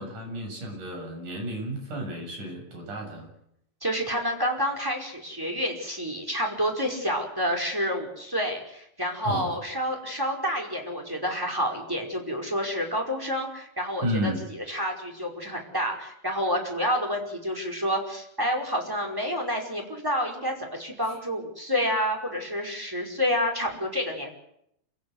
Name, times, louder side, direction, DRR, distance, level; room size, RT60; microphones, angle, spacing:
voice 1, 0.0-3.3 9.2-9.7 14.0-14.4 21.1-21.2, equal, 45° right, 2 dB, 8.6 m, -32 dB
voice 2, 3.8-14.3 14.7-24.3, equal, 5° right, 1 dB, 4.7 m, -29 dB
28.0 x 17.0 x 8.1 m, 0.75 s
omnidirectional pair, 4.9 m